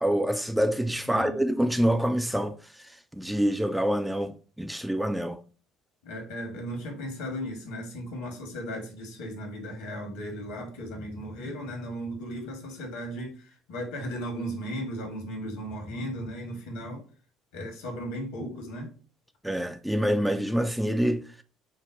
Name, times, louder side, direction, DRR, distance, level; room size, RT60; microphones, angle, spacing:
voice 1, 0.0-5.4 19.4-21.4, equal, 5° right, 0.3 m, -26 dB
voice 2, 1.0-1.4 6.0-17.0 17.5-18.9, equal, 70° left, 1.1 m, -36 dB
4.6 x 2.0 x 3.8 m
figure-of-eight pair, 55°, 0 cm